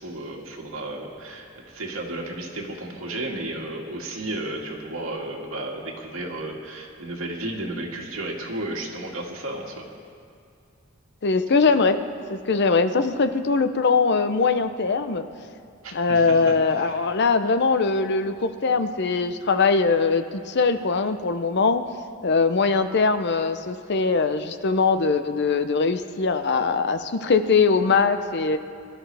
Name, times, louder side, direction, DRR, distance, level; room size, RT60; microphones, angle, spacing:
voice 1, 0.0-9.9 15.8-16.4 16.7-17.1, right 1 dB, 85° right, -1 dB, 2.1 m, -33 dB
voice 2, 11.2-12.0 12.3-15.3 15.9-21.8 22.2-28.6, left 4 dB, 55° left, 9 dB, 0.7 m, -21 dB
23.0 x 13.0 x 3.4 m, 2.3 s
head